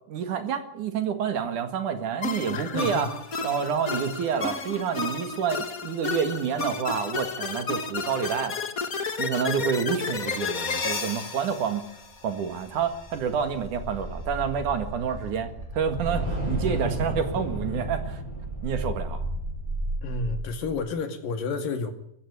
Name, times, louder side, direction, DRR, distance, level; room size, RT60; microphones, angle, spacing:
voice 1, 0.1-3.1 3.4-8.6 9.2-11.9 12.2-18.2 18.6-19.2, right 7 dB, 60° right, 3.2 m, -28 dB
sound 1, 2.2-12.6, left 4 dB, 35° left, 1.5 m, -32 dB
voice 2, 2.5-3.1 20.0-21.9, left 4 dB, 75° left, 4.0 m, -30 dB
sound 2, 12.7-20.8, right 1 dB, 20° right, 8.3 m, -32 dB
24.0 x 14.0 x 9.8 m
omnidirectional pair, 4.1 m